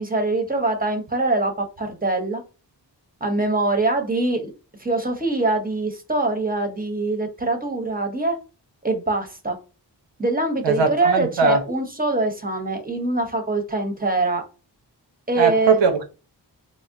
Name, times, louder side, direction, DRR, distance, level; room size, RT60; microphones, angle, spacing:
voice 1, 0.0-2.4 3.2-4.5 4.8-8.4 8.8-9.6 10.2-14.4 15.3-15.8, right 2 dB, 20° right, 0.7 m, -23 dB
voice 2, 10.6-11.6 15.4-16.0, right 5 dB, 85° right, 0.7 m, -20 dB
3.4 x 2.1 x 2.5 m
cardioid pair, 55°, 42 cm